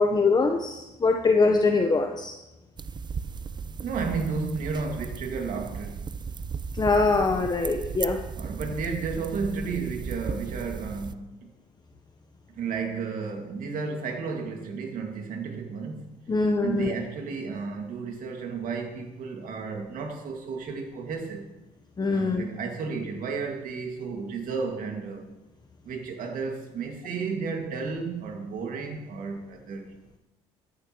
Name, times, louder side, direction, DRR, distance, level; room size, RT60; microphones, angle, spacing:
voice 1, 0.0-2.3 6.7-8.2 16.3-16.9 22.0-22.5, left 3 dB, 25° left, 4 dB, 1.0 m, -23 dB
sound 1, 2.8-11.1, right 5 dB, 30° right, 0.5 m, -36 dB
voice 2, 3.8-6.1 8.4-11.4 12.6-16.1 16.6-21.5 22.1-25.3 25.8-29.9, right 5 dB, 60° right, 3 dB, 2.2 m, -33 dB
14.0 x 10.5 x 3.1 m, 0.97 s
supercardioid pair, 70°, 16 cm